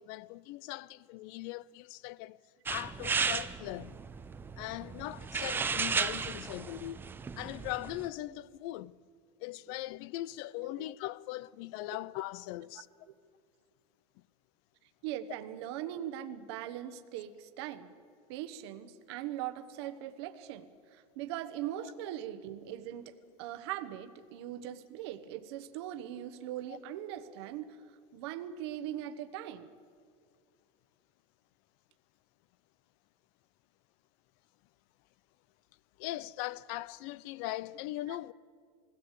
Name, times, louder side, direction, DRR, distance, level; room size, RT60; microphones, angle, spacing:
voice 1, 0.0-2.4 2.7-4.0 4.6-7.0 7.4-9.0 9.4-12.9 21.8-21.9 26.7-26.8 36.0-38.3, left 16 dB, 60° left, 0.5 m, -40 dB
sound 1, 2.7-8.1, right 5 dB, 15° right, 0.6 m, -35 dB
voice 2, 15.0-17.9 18.3-29.7 38.1-38.2, right 12 dB, 70° right, 1.1 m, -40 dB
21.0 x 16.5 x 8.2 m
supercardioid pair, 140°, 14 cm